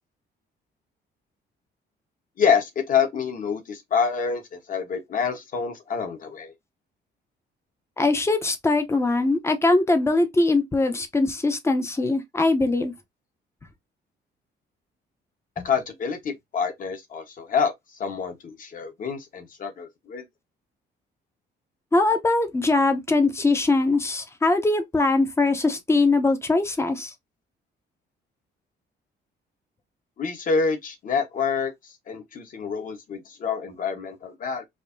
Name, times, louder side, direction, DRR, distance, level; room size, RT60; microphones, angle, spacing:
voice 1, 2.4-6.5 15.6-17.7 18.0-20.2 30.2-34.6, left 6 dB, 45° left, 1.3 m, -27 dB
voice 2, 8.0-12.9 21.9-27.1, left 2 dB, 15° left, 0.8 m, -22 dB
5.0 x 2.8 x 2.7 m
cardioid pair, 145°, 19 cm